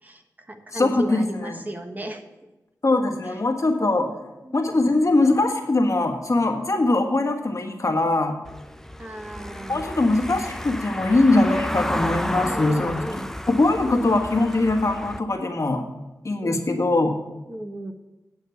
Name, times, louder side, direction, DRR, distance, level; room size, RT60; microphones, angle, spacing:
voice 1, 0.0-2.2 3.2-3.4 4.4-4.8 9.0-9.9 12.4-13.3 16.4-16.6 17.5-17.9, right 1 dB, 25° right, 5 dB, 1.2 m, -36 dB
voice 2, 0.7-1.6 2.8-4.1 4.5-8.4 9.7-13.0 13.5-15.8 16.2-17.2, left 2 dB, 50° left, 3 dB, 1.6 m, -21 dB
Car passing by / Engine, 8.5-15.2, left 1 dB, 5° left, 0.5 m, -32 dB
9.5 x 6.4 x 7.0 m, 1.0 s
cardioid pair, 55°, 7 cm